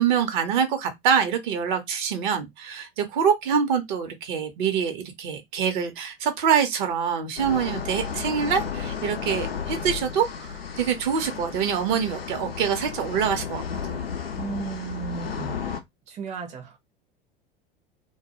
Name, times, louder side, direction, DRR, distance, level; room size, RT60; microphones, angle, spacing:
voice 1, 0.0-14.0, right 7 dB, 55° right, 0.8 m, -25 dB
sound 1, 7.4-15.8, left 7 dB, 85° left, 0.5 m, -33 dB
voice 2, 14.4-15.6 16.1-16.8, right 7 dB, 25° right, 0.6 m, -34 dB
2.2 x 2.1 x 2.8 m
figure-of-eight pair, 75°, 29 cm